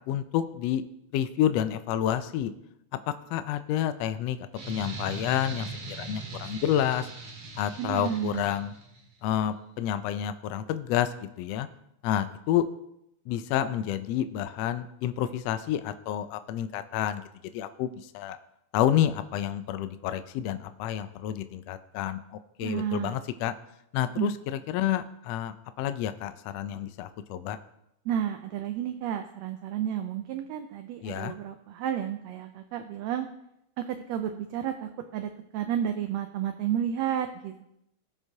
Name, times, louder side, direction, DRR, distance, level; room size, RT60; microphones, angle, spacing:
voice 1, 0.1-0.8 1.1-2.5 3.1-4.4 4.7-7.1 7.6-8.7 9.2-11.7 12.0-12.7 13.3-17.2 17.5-18.4 18.7-23.5 23.9-27.6 31.0-31.3, left 11 dB, 80° left, 11 dB, 1.5 m, -29 dB
sound 1, 4.6-9.0, right 3 dB, 55° right, 2.6 m, -40 dB
voice 2, 7.8-8.5 22.6-23.1 24.2-24.3 28.1-33.3 33.8-37.7, right 10 dB, 75° right, 7 dB, 1.7 m, -31 dB
18.0 x 7.1 x 2.8 m, 0.81 s
omnidirectional pair, 3.4 m